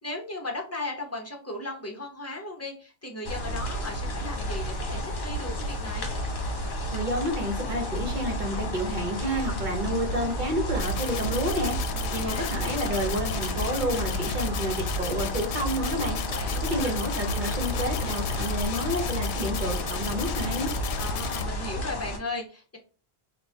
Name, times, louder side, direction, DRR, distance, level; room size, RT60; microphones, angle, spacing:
voice 1, 0.0-6.1 11.9-12.6 16.3-17.0 21.0-22.8, left 2 dB, 15° left, 1 dB, 0.9 m, -37 dB
sound 1, 3.2-22.2, equal, 55° left, 1.1 m, -32 dB
sound 2, 5.2-6.9 9.3-10.6 13.0-15.1 17.3-21.4, left 2 dB, 70° right, 1.0 m, -39 dB
voice 2, 6.9-11.8 12.1-16.2 16.6-20.7, equal, 50° right, 2 dB, 1.2 m, -30 dB
sound 3, 10.8-21.4, left 8 dB, 85° left, 0.8 m, -35 dB
3.8 x 2.6 x 4.1 m, 0.35 s
omnidirectional pair, 1.1 m